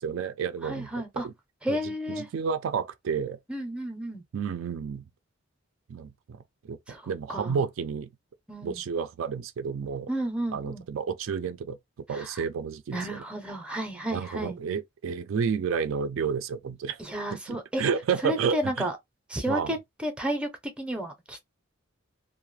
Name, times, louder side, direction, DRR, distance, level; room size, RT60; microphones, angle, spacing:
voice 1, 0.0-1.3 1.7-3.4 4.3-5.0 5.9-6.4 6.7-6.8 7.1-8.1 8.6-10.1 10.5-11.8 12.1-13.2 14.1-17.0 17.5-18.9 19.5-19.7, right 6 dB, 75° right, 0.3 m, -31 dB
voice 2, 0.6-1.3 1.6-2.3 3.5-4.2 6.9-7.0 7.3-7.6 8.5-8.8 10.1-10.8 12.1-12.4 12.9-14.6 17.0-17.8 18.2-19.0 19.3-21.4, equal, 5° right, 0.5 m, -32 dB
2.3 x 2.1 x 3.1 m
head